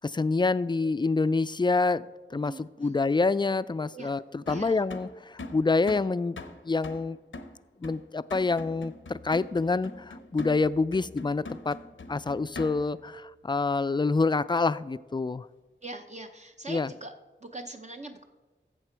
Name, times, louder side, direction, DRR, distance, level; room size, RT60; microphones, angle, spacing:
voice 1, 0.0-2.0 2.3-6.4 6.7-7.2 7.8-11.8 12.1-15.5 16.7-16.9, left 3 dB, 25° left, 17 dB, 0.3 m, -27 dB
voice 2, 2.4-2.9 3.9-4.1 4.5-4.8 15.8-17.1 17.4-18.2, right 2 dB, 35° right, 4 dB, 0.7 m, -42 dB
sound 1, 4.5-13.1, left 2 dB, 85° left, 0.7 m, -43 dB
14.0 x 7.5 x 4.5 m, 1.2 s
wide cardioid pair, 50°, 19 cm